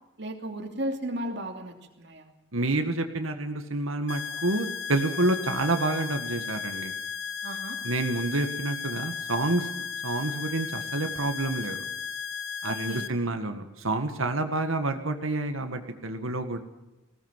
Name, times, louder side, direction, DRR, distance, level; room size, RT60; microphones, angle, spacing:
voice 1, 0.2-2.3 7.4-7.8 12.6-13.1, right 1 dB, 55° right, 3 dB, 2.8 m, -35 dB
voice 2, 2.5-6.9 7.8-9.7 10.0-11.8 12.6-16.6, right 2 dB, 85° right, 6 dB, 1.9 m, -28 dB
sound 1, 4.1-13.1, left 6 dB, 60° left, 1.3 m, -35 dB
20.0 x 17.5 x 7.5 m, 1.0 s
head